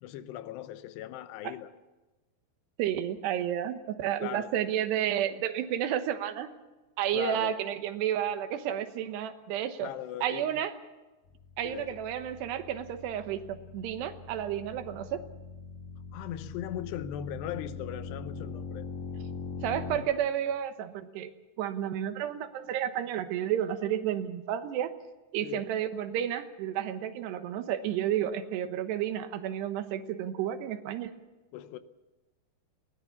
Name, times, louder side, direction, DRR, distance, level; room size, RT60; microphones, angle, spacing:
voice 1, 0.0-1.7 4.2-4.5 7.1-7.5 9.8-10.6 11.6-12.0 16.1-18.9 25.4-25.6 31.5-31.8, left 11 dB, 90° left, 3.0 m, -39 dB
voice 2, 2.8-6.5 7.0-9.9 10.2-10.7 11.6-15.2 19.6-21.3 21.6-24.9 25.3-31.1, right 10 dB, 85° right, 3.3 m, -31 dB
sound 1, 11.2-20.0, left 4 dB, 55° left, 5.7 m, -42 dB
21.5 x 17.5 x 7.1 m
omnidirectional pair, 4.8 m